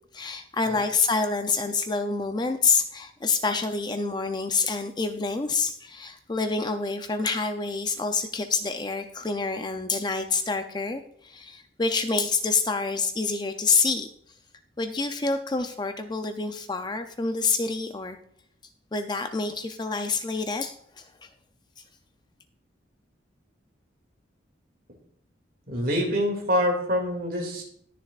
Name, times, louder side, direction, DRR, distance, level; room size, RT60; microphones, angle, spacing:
voice 1, 0.1-14.1 14.8-18.2 18.9-21.3, left 4 dB, 20° left, 8 dB, 0.4 m, -27 dB
voice 2, 25.7-27.6, equal, 45° right, 2 dB, 2.3 m, -26 dB
20.0 x 6.7 x 2.4 m, 0.65 s
head